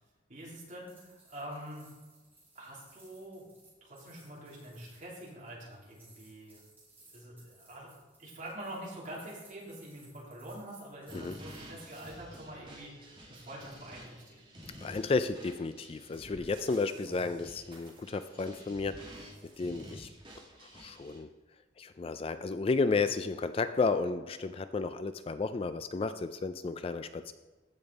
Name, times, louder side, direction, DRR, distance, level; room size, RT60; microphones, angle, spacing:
voice 1, 0.3-1.9 2.5-3.5 3.8-6.6 7.1-7.9 8.2-14.4, right 1 dB, 45° right, -5 dB, 3.3 m, -45 dB
sound 1, 0.8-12.1, right 2 dB, 10° right, 3.0 m, -62 dB
sound 2, 11.1-21.2, equal, 25° right, 2.4 m, -50 dB
voice 2, 14.8-19.3 19.6-20.1 20.6-21.3 21.8-27.3, left 4 dB, 30° left, 11 dB, 0.3 m, -32 dB
15.0 x 5.3 x 4.1 m, 1.3 s
head